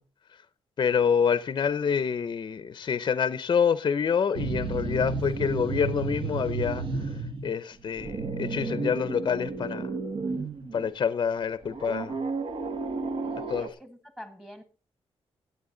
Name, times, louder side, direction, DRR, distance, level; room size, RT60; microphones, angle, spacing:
voice 1, 0.8-6.8 7.4-9.9 10.7-12.2 13.5-13.7, left 7 dB, 45° left, 0.7 m, -27 dB
sound 1, 4.3-7.5 7.8-10.9 11.7-13.7, right 4 dB, 55° right, 1.3 m, -32 dB
voice 2, 13.2-14.6, equal, 5° right, 1.6 m, -46 dB
17.0 x 8.2 x 3.9 m
wide cardioid pair, 150°, 11 cm